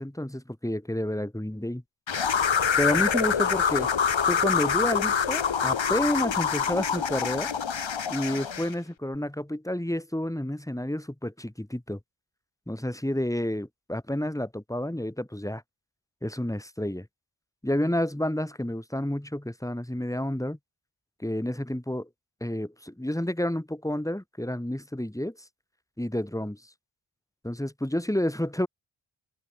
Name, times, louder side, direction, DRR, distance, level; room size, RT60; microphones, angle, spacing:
voice 1, 0.0-1.8 2.8-3.9 4.3-7.5 8.1-12.0 12.7-15.6 16.2-17.1 17.6-20.6 21.2-22.1 22.4-25.3 26.0-26.6 27.4-28.7, left 1 dB, 5° left, 3.2 m, -30 dB
sound 1, 2.1-8.7, left 7 dB, 70° left, 2.2 m, -26 dB
open air
cardioid pair, 50°, 47 cm